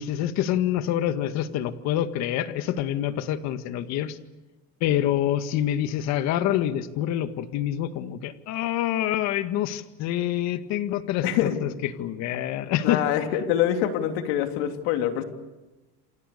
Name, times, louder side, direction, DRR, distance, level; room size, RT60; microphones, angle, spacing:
voice 1, 0.0-4.2 4.8-13.1, left 11 dB, 65° left, 9 dB, 2.0 m, -26 dB
voice 2, 11.2-11.6 12.8-15.2, left 10 dB, 85° left, 5 dB, 3.2 m, -25 dB
28.5 x 26.5 x 6.9 m, 1.1 s
cardioid pair, 135°, 29 cm